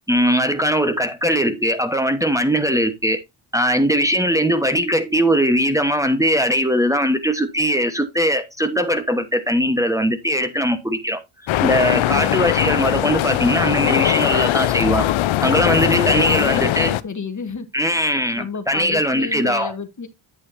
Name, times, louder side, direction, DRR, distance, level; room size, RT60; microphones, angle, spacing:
voice 1, 0.1-3.2 3.5-11.2 11.6-15.1 15.4-16.9 17.7-19.7, equal, 5° right, 1.2 m, -20 dB
sound 1, 11.5-17.0, left 14 dB, 75° left, 0.6 m, -20 dB
voice 2, 12.1-12.5 15.9-17.7 18.3-20.1, left 5 dB, 40° left, 1.2 m, -31 dB
8.5 x 8.3 x 2.7 m
cardioid pair, 75°, 47 cm